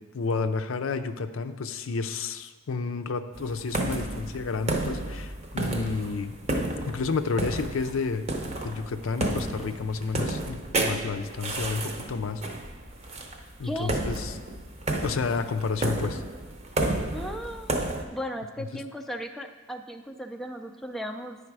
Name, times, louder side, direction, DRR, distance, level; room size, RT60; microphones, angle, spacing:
voice 1, 0.1-6.4 6.9-8.3 8.6-12.4 13.6-14.4 15.0-16.2, left 4 dB, 80° left, 9 dB, 0.5 m, -30 dB
sound 1, 3.3-18.0, right 2 dB, 35° right, 0.7 m, -32 dB
voice 2, 17.1-17.8 18.1-21.4, equal, ahead, 4 dB, 0.4 m, -36 dB
9.9 x 4.9 x 4.7 m, 1.2 s
head